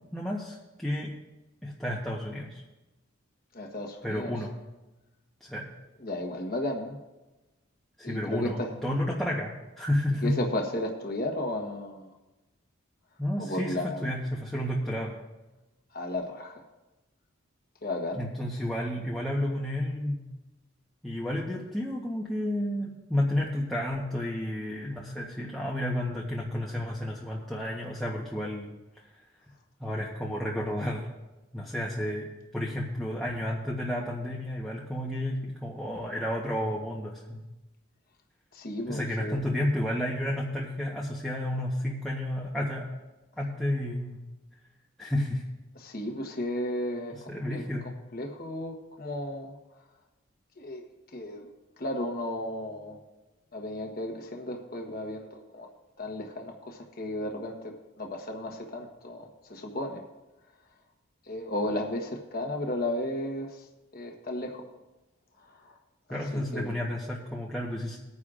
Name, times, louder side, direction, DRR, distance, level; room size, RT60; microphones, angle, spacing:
voice 1, 0.1-1.1 1.6-2.6 4.0-4.5 5.4-5.7 8.0-10.4 13.2-15.2 18.2-20.3 21.0-28.7 29.0-29.2 29.8-31.1 31.5-37.5 38.8-43.0 43.4-44.2 45.0-45.4 47.3-47.9 66.1-68.0, left 1 dB, ahead, -5 dB, 1.0 m, -31 dB
voice 2, 3.5-4.3 6.0-7.0 8.0-8.7 10.2-12.1 13.4-14.1 15.9-16.6 17.8-18.2 38.5-39.4 45.8-47.6 48.1-49.5 50.6-50.8 51.1-51.5 51.8-53.0 53.5-55.7 56.0-60.0 61.3-63.6 63.9-64.6 65.4-65.8 66.1-66.8, left 1 dB, 45° left, 2 dB, 1.2 m, -34 dB
19.5 x 9.7 x 2.5 m, 1.1 s
head